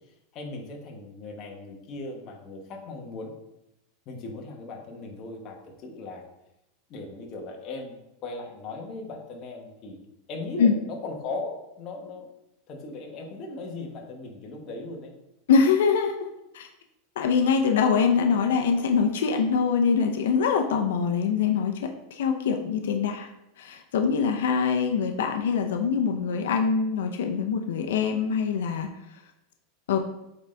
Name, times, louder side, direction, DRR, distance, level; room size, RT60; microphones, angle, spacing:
voice 1, 0.3-3.3 4.0-6.2 6.9-10.0 10.3-12.3 12.7-15.1, left 3 dB, 35° left, 1 dB, 1.3 m, -38 dB
voice 2, 15.5-16.3 16.5-16.7 17.2-23.3 23.6-28.9 29.9-30.0, left 6 dB, 90° left, 4 dB, 0.6 m, -24 dB
8.1 x 3.9 x 3.4 m, 0.88 s
supercardioid pair, 150°, 0 cm